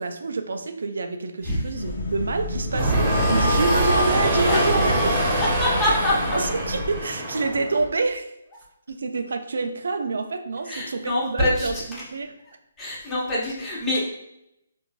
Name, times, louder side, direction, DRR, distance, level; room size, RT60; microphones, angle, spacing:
voice 1, 0.0-5.2 6.3-8.3 8.9-12.3, right 3 dB, 75° right, 7 dB, 0.4 m, -27 dB
sound 1, 1.7-7.0, left 1 dB, 75° left, 0.6 m, -30 dB
sound 2, 2.7-7.9, right 1 dB, 25° right, 0.9 m, -23 dB
voice 2, 4.4-4.8 5.4-6.4 7.3-7.4 10.6-12.1 12.8-14.0, left 1 dB, 15° left, -6 dB, 0.9 m, -25 dB
3.8 x 2.5 x 2.4 m, 0.82 s
hypercardioid pair, 150°, 0 cm